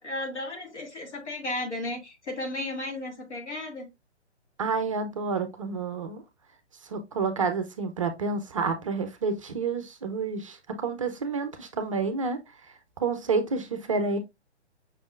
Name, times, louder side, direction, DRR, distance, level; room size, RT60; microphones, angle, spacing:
voice 1, 0.0-3.9, left 2 dB, 75° left, 1.8 m, -34 dB
voice 2, 4.6-6.2 6.9-12.4 13.0-14.2, right 4 dB, 30° right, 0.4 m, -29 dB
5.6 x 3.5 x 2.3 m
figure-of-eight pair, 130°, 35 cm